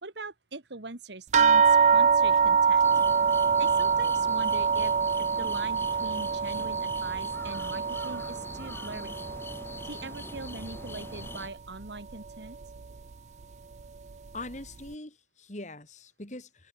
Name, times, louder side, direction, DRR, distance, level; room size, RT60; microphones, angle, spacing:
voice 1, 0.0-2.9 3.6-4.9 5.2-9.3 9.8-12.6, right 3 dB, 70° right, 2.0 m, -42 dB
sound 1, 1.3-10.2 10.5-11.3 12.1-12.2 12.6-12.8, right 6 dB, 40° right, 0.4 m, -25 dB
sound 2, 2.8-11.5, left 2 dB, 15° left, 1.6 m, -43 dB
voice 2, 14.3-16.7, left 2 dB, 40° left, 2.8 m, -42 dB
head